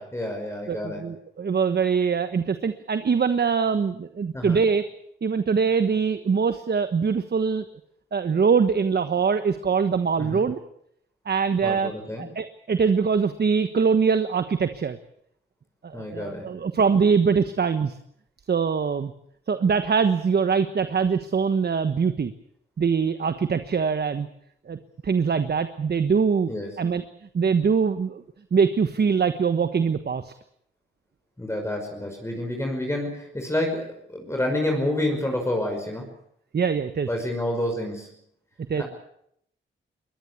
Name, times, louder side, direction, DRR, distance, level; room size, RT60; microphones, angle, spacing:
voice 1, 0.0-1.1 4.3-4.6 10.2-10.4 11.6-12.3 15.9-16.5 26.5-26.7 31.4-36.1 37.1-38.1 38.8-38.9, left 1 dB, 15° left, 2 dB, 5.6 m, -29 dB
voice 2, 0.7-4.8 5.2-7.6 8.1-10.6 11.2-11.9 12.2-15.0 15.8-18.0 18.5-19.1 19.5-22.3 22.8-24.3 24.7-24.8 25.0-26.5 26.8-27.0 27.3-28.2 28.5-30.3 36.5-37.1 38.7-38.8, right 5 dB, 55° right, 10 dB, 1.3 m, -23 dB
22.5 x 19.5 x 8.3 m, 0.73 s
cardioid pair, 80°, 20 cm